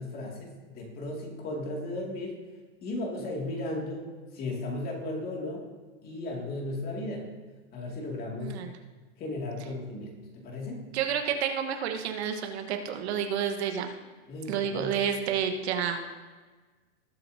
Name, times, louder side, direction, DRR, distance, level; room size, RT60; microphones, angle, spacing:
voice 1, 0.0-2.4 2.8-5.7 6.0-7.3 7.7-8.6 9.2-10.9 14.3-14.9, left 2 dB, 25° left, -1 dB, 2.2 m, -35 dB
voice 2, 8.4-8.8 10.9-13.9 14.5-16.0, right 8 dB, 60° right, 5 dB, 1.2 m, -30 dB
19.5 x 8.4 x 2.7 m, 1.3 s
supercardioid pair, 160°, 37 cm